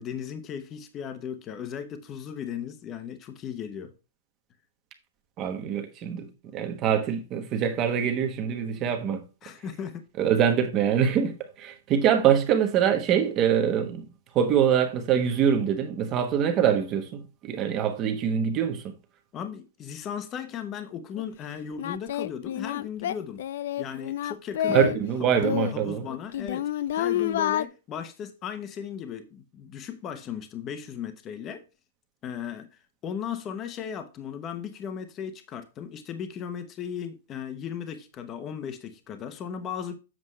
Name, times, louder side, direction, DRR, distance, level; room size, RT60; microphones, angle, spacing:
voice 1, 0.0-3.9 9.4-10.1 19.3-23.4 23.8-25.0 25.4-31.6 32.2-32.7 33.0-40.0, left 8 dB, 20° left, 0.9 m, -36 dB
voice 2, 5.4-6.3 6.5-9.2 10.2-14.0 14.3-18.8 24.7-26.0, right 8 dB, 25° right, 1.1 m, -24 dB
Singing, 21.2-21.3 21.8-25.0 25.3-27.6, left 11 dB, 50° left, 0.4 m, -29 dB
7.7 x 7.0 x 3.2 m
hypercardioid pair, 165°, 0 cm